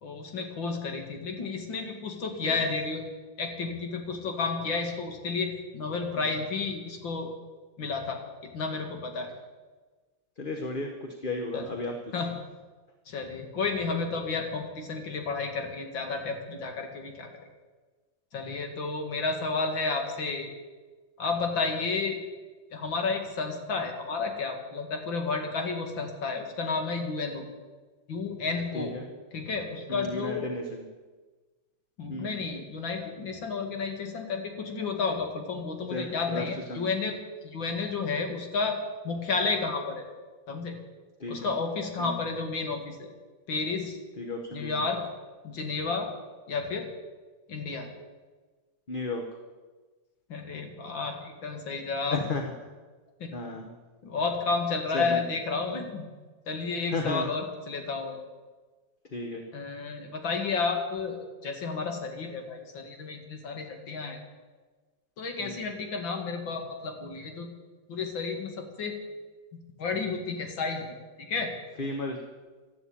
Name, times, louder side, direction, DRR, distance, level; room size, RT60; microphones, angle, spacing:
voice 1, 0.0-3.0 3.4-7.3 7.8-8.2 8.5-9.3 11.5-11.6 12.1-12.3 13.1-17.3 18.3-20.5 21.2-22.2 22.7-27.4 28.1-28.9 29.3-30.5 32.0-37.2 37.4-38.8 39.0-40.1 40.5-40.8 41.3-43.1 43.5-44.0 44.5-45.0 45.4-46.1 46.5-46.9 47.5-47.9 50.3-51.2 51.4-52.2 53.2-53.3 54.0-56.0 56.5-58.2 59.5-61.2 61.4-64.2 65.2-67.5 67.9-69.0 69.5-70.9 71.3-71.5, left 4 dB, 80° left, 4 dB, 2.8 m, -31 dB
voice 2, 10.4-11.9 28.7-29.0 29.9-30.8 32.1-32.4 35.9-36.4 36.7-36.9 41.2-41.5 42.0-42.2 44.2-44.8 48.9-49.2 52.1-52.5 53.3-53.7 54.9-55.2 56.9-57.3 59.1-59.4 65.4-65.6 71.8-72.2, left 2 dB, 30° left, 3 dB, 1.2 m, -34 dB
12.5 x 12.0 x 8.7 m, 1.3 s
omnidirectional pair, 2.1 m